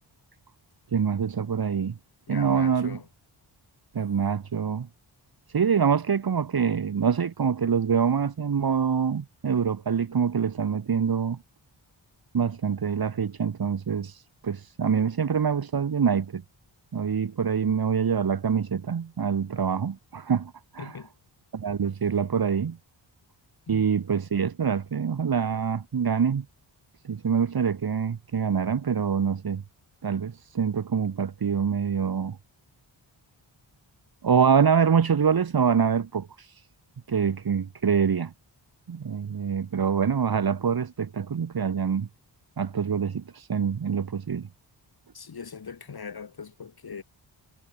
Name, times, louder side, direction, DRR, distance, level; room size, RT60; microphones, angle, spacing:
voice 1, 0.9-2.0 2.3-3.0 3.9-4.9 5.5-11.4 12.3-16.4 16.9-20.9 21.5-22.8 23.7-26.5 27.0-29.6 30.0-32.4 34.2-36.7 37.1-38.3 38.9-42.1 42.6-44.5, right 7 dB, 50° right, 1.9 m, -25 dB
voice 2, 2.3-3.1 20.8-21.1 23.7-23.9 45.1-47.0, left 6 dB, 50° left, 4.3 m, -40 dB
wide cardioid pair, 175°, 47 cm